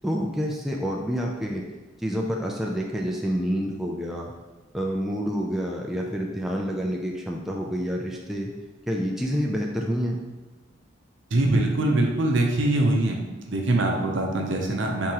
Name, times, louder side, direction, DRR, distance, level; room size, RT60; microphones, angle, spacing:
voice 1, 0.0-1.6 2.0-4.3 4.7-8.5 8.9-10.2, equal, ahead, -2 dB, 0.3 m, -28 dB
voice 2, 11.3-15.1, right 2 dB, 65° right, 1 dB, 0.7 m, -23 dB
4.7 x 3.5 x 2.9 m, 1.2 s
head